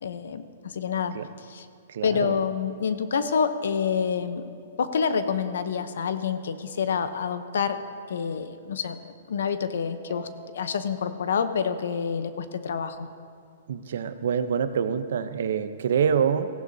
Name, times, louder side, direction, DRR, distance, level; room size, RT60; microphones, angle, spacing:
voice 1, 0.0-1.7 2.0-4.5 4.8-7.8 8.1-10.3 10.5-13.1, left 6 dB, 80° left, 11 dB, 0.8 m, -28 dB
voice 2, 1.9-2.3 13.7-16.5, right 7 dB, 70° right, 10 dB, 0.7 m, -26 dB
sound 1, 3.1-6.7 10.1-13.1, left 2 dB, 25° right, 2.6 m, -46 dB
18.0 x 15.5 x 2.8 m, 2.2 s
hypercardioid pair, 155°, 0 cm